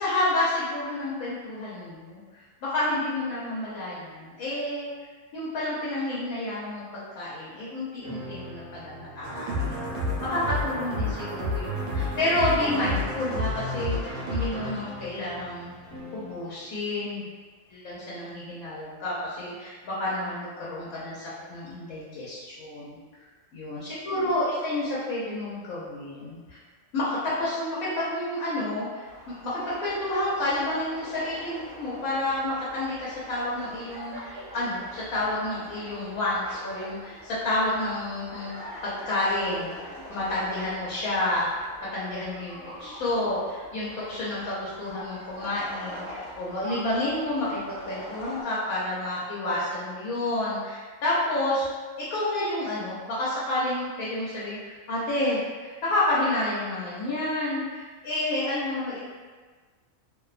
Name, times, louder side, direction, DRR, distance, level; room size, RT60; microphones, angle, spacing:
voice 1, 0.0-4.9 5.3-6.8 7.2-9.9 10.2-15.7 16.1-17.3 17.7-23.0 23.5-26.6 26.9-38.5 38.8-41.5 41.8-47.6 47.9-51.7 52.0-59.0, left 1 dB, 85° left, -8 dB, 1.1 m, -30 dB
sound 1, 8.0-16.4, left 1 dB, 20° left, 0.8 m, -42 dB
sound 2, 9.2-16.0, left 1 dB, 90° right, 1.0 m, -31 dB
sound 3, 29.0-48.4, equal, 65° right, 0.6 m, -43 dB
2.6 x 2.1 x 2.4 m, 1.4 s
omnidirectional pair, 1.4 m